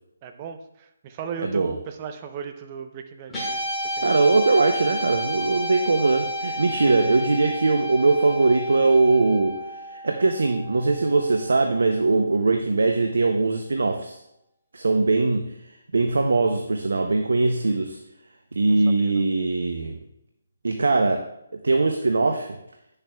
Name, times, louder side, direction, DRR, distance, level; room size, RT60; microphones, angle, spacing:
voice 1, 0.2-3.7 3.9-4.2 6.7-7.1 17.6-17.8 18.7-19.2, right 7 dB, 30° right, 7 dB, 0.7 m, -37 dB
voice 2, 1.4-1.7 4.0-9.6 9.9-14.2 14.7-15.5 15.9-18.0 18.6-20.0 20.6-21.3 21.6-22.6, right 3 dB, 75° right, 5 dB, 0.6 m, -21 dB
Guitar, 3.3-11.8, equal, 10° left, 2.2 m, -32 dB
9.9 x 6.6 x 2.3 m, 0.82 s
figure-of-eight pair, 145°, 0 cm